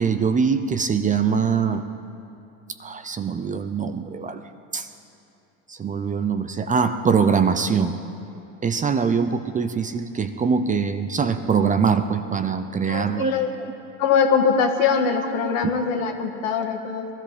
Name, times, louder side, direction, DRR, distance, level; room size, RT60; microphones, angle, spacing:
voice 1, 0.0-1.8 2.8-4.4 4.7-4.9 5.7-8.0 8.6-13.3, right 6 dB, 20° right, 9 dB, 0.6 m, -23 dB
voice 2, 12.9-13.5 14.0-17.1, left 6 dB, 75° left, 4 dB, 1.7 m, -22 dB
20.0 x 13.5 x 5.2 m, 2.7 s
supercardioid pair, 100°, 40 cm